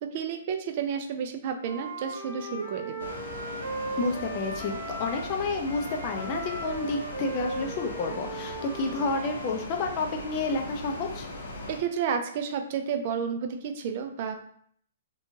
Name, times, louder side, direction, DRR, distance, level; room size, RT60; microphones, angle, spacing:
voice 1, 0.0-3.1 11.7-14.4, right 7 dB, 45° right, 6 dB, 0.3 m, -31 dB
Wind instrument woodwind instrument, 1.6-5.4 5.7-9.5, right 2 dB, 80° right, 0.9 m, -37 dB
sound 1, 3.0-11.8, left 2 dB, 80° left, 0.7 m, -39 dB
voice 2, 4.0-11.3, left 3 dB, 35° left, 3 dB, 0.5 m, -30 dB
2.8 x 2.2 x 2.7 m, 0.62 s
hypercardioid pair, 140°, 0 cm